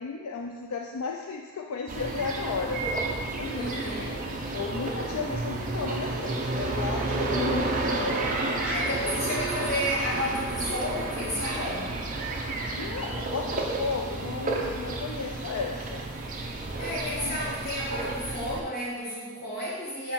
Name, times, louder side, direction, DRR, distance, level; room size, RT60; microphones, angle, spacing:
voice 1, 0.0-2.8 3.3-3.8 4.5-8.9 12.8-16.1 17.2-17.5, left 4 dB, 80° left, 1 dB, 0.4 m, -34 dB
sound 1, 1.9-18.6, right 2 dB, 35° right, 0.5 m, -31 dB
voice 2, 3.5-4.3 8.6-12.0 16.8-20.1, equal, 45° left, -7 dB, 1.8 m, -32 dB
5.6 x 4.1 x 4.5 m, 1.4 s
head